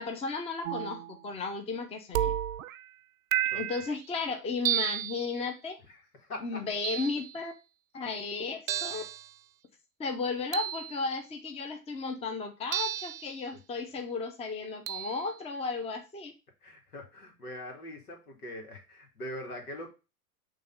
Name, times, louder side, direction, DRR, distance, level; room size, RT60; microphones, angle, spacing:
voice 1, 0.0-2.3 3.5-5.8 6.4-7.5 7.9-9.1 10.0-16.3, left 4 dB, 15° left, 5 dB, 0.8 m, -34 dB
sound 1, 0.7-1.2 2.1-2.9 3.3-4.0 4.7-5.4 6.8-7.4 8.7-9.3 10.5-11.1 12.7-13.4 14.9-15.3, right 12 dB, 60° right, 0.5 m, -32 dB
voice 2, 5.8-6.6 16.6-19.9, left 1 dB, 80° left, 2 dB, 2.2 m, -42 dB
5.6 x 3.2 x 5.4 m, 0.28 s
figure-of-eight pair, 95°, 45 cm